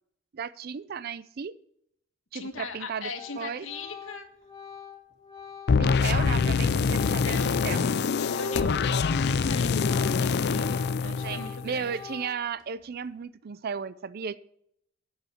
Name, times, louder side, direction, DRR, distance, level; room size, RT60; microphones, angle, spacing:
voice 1, 0.3-1.6 2.3-3.7 5.8-7.9 11.0-14.4, right 6 dB, 50° right, 0.4 m, -35 dB
voice 2, 2.3-4.3 6.0-6.1 7.0-7.6 8.2-11.9, left 3 dB, 75° left, 1.6 m, -39 dB
Organ, 2.5-2.8 3.1-9.4 9.7-12.6, left 7 dB, 20° left, 1.9 m, -44 dB
sound 1, 5.7-11.8, left 5 dB, 55° left, 0.4 m, -25 dB
9.4 x 6.4 x 8.4 m
head